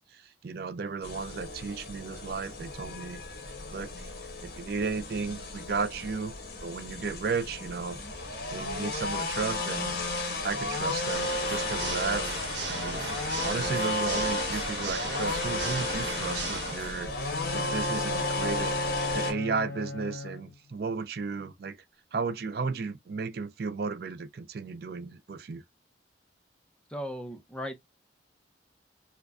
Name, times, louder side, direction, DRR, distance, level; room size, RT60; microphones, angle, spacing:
voice 1, 0.0-3.2 3.7-4.1 4.4-6.3 6.6-8.0 8.5-9.9 10.4-12.3 12.7-13.1 13.4-17.1 17.4-18.8 19.1-21.8 22.1-25.6, right 4 dB, 55° right, 0.4 m, -34 dB
sound 1, 1.0-19.3, left 2 dB, 55° left, 1.3 m, -33 dB
Water / Mechanisms, 11.0-17.0, right 3 dB, 75° right, 1.1 m, -36 dB
Bowed string instrument, 17.0-20.7, left 3 dB, 75° left, 0.7 m, -37 dB
voice 2, 26.9-27.8, equal, 5° left, 0.5 m, -37 dB
4.7 x 2.2 x 2.3 m
head